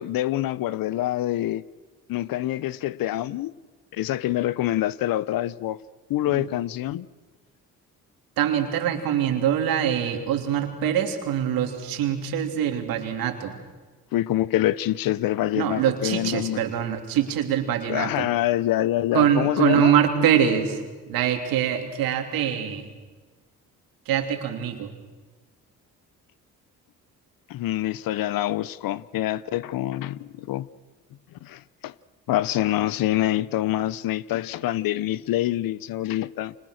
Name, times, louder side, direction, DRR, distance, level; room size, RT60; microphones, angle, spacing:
voice 1, 0.0-1.6 2.1-3.5 3.9-5.8 6.1-7.1 14.1-16.6 17.9-19.9 27.5-30.7 31.4-31.9 32.3-36.6, left 14 dB, 80° left, 0.9 m, -26 dB
voice 2, 8.4-13.6 15.5-18.3 19.1-22.9 24.0-24.9, right 9 dB, 90° right, 3.2 m, -24 dB
29.5 x 25.0 x 6.5 m
cardioid pair, 75°, 34 cm